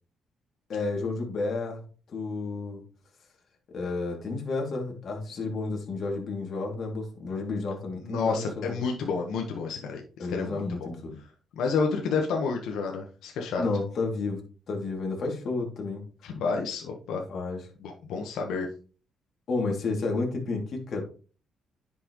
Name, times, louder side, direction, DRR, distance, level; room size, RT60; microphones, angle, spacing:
voice 1, 0.7-1.8 2.1-2.8 3.7-8.8 10.2-11.2 13.6-14.4 14.7-16.0 17.3-17.6 19.5-21.0, left 3 dB, 55° left, 1 dB, 2.7 m, -31 dB
voice 2, 8.0-10.0 10.3-10.9 11.6-13.6 16.2-17.2 17.8-18.7, left 4 dB, 80° left, 2 dB, 1.3 m, -30 dB
10.0 x 6.0 x 3.1 m, 0.38 s
cardioid pair, 90°, 0 cm